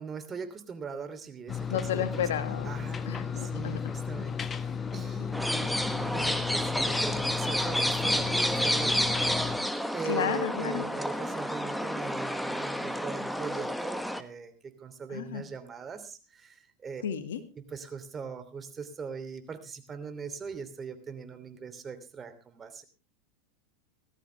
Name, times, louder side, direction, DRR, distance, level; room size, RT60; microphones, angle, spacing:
voice 1, 0.0-2.3 2.6-3.1 3.4-17.0 17.6-22.8, right 5 dB, 25° right, 9 dB, 2.9 m, -40 dB
sound 1, 1.5-9.6, left 6 dB, 25° left, 1.2 m, -34 dB
voice 2, 1.7-2.8 3.1-3.9 10.1-10.9 15.1-15.4 17.0-17.4, left 9 dB, 80° left, 9 dB, 1.9 m, -32 dB
sound 2, 5.3-14.2, equal, ahead, 1.2 m, -30 dB
18.0 x 14.0 x 3.4 m, 0.30 s
hypercardioid pair, 100°, 0 cm